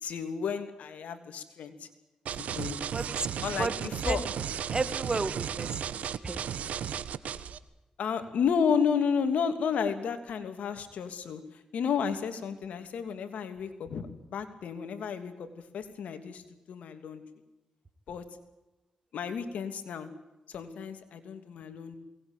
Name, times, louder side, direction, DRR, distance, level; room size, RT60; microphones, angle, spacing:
voice 1, 0.0-1.9 2.3-2.9 3.4-4.2 7.3-7.4 8.0-11.4 11.7-16.4 16.7-17.2 18.1-18.2 19.1-20.1 20.5-22.0, left 6 dB, 85° left, 8 dB, 2.9 m, -32 dB
sound 1, 2.3-7.6, right 8 dB, 85° right, 1.2 m, -35 dB
voice 2, 2.9-3.3 3.6-3.7 4.1-4.3 4.7-5.8 6.2-6.5, right 3 dB, 35° right, 13 dB, 1.9 m, -31 dB
22.5 x 19.5 x 9.0 m, 1.0 s
cardioid pair, 65°, 2 cm